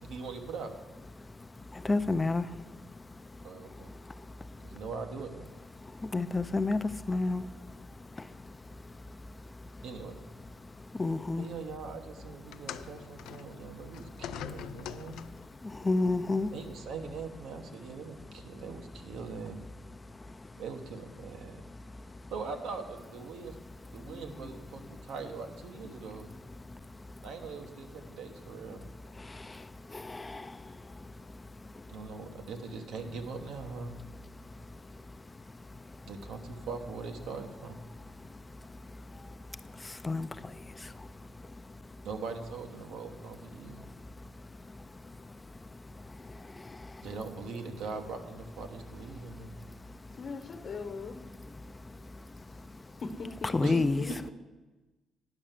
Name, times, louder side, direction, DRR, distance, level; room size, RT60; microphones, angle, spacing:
voice 1, 0.0-0.7 3.4-3.9 4.6-5.5 9.8-10.2 11.4-15.2 16.5-19.6 20.6-21.6 22.3-23.5 23.9-26.3 27.2-28.9 31.9-33.9 36.1-37.8 42.0-43.9 47.0-49.5 53.6-53.8 54.1-54.2, right 4 dB, 80° right, 5 dB, 1.1 m, -41 dB
voice 2, 1.9-2.4 6.1-6.8 7.1-7.4 11.0-11.4 15.9-16.5 30.1-30.4 40.0-40.3 53.5-54.0, left 3 dB, 20° left, 11 dB, 0.4 m, -28 dB
sound 1, 12.5-15.6 16.6-16.7 17.6-17.7, left 10 dB, 85° left, 0.4 m, -44 dB
voice 3, 50.2-51.2 53.0-54.3, left 4 dB, 55° left, 8 dB, 1.1 m, -39 dB
9.7 x 5.5 x 7.4 m, 1.2 s
cardioid pair, 90°, 0 cm